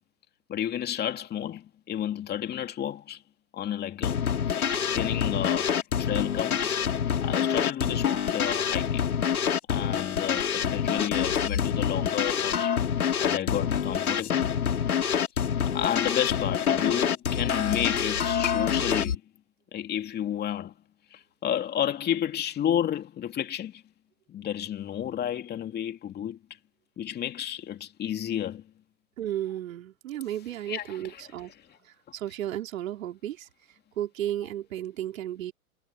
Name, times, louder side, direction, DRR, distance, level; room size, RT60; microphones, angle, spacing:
voice 1, 0.5-3.2 3.5-4.3 4.6-6.8 7.2-9.1 9.7-12.8 13.2-14.6 15.7-19.2 19.7-20.7 21.1-23.8 24.3-26.4 27.0-28.6 30.7-31.3, left 10 dB, 20° left, 2.7 m, -31 dB
sound 1, 4.0-19.2, left 8 dB, 80° left, 2.7 m, -26 dB
voice 2, 29.2-31.5 32.1-33.5 34.0-35.5, right 12 dB, 65° right, 4.1 m, -33 dB
hypercardioid pair, 120°, 43 cm